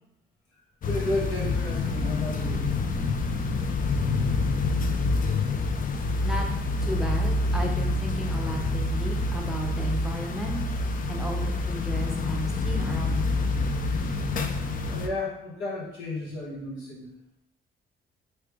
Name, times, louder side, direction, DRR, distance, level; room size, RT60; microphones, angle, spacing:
sound 1, 0.8-15.1, left 3 dB, 45° left, 0.4 m, -27 dB
voice 1, 0.9-2.6 14.9-17.1, left 2 dB, 90° left, -4 dB, 1.3 m, -32 dB
voice 2, 6.8-10.6 11.1-13.4, right 1 dB, ahead, 0 dB, 0.7 m, -34 dB
3.2 x 2.9 x 3.4 m, 0.83 s
cardioid pair, 90°, 20 cm